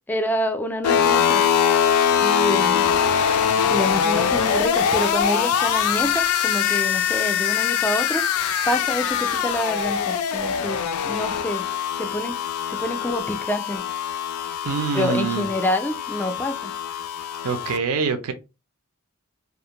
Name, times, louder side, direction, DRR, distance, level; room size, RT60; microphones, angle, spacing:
voice 1, 0.1-1.7 2.2-2.9 3.7-8.2 8.7-11.6 12.0-12.4 12.7-13.8 14.9-16.7, left 1 dB, 10° left, 0.3 m, -27 dB
sound 1, 0.8-17.8, left 8 dB, 90° left, 0.4 m, -23 dB
voice 2, 14.6-15.4 17.4-18.3, right 5 dB, 85° right, 0.4 m, -25 dB
2.4 x 2.0 x 2.9 m
head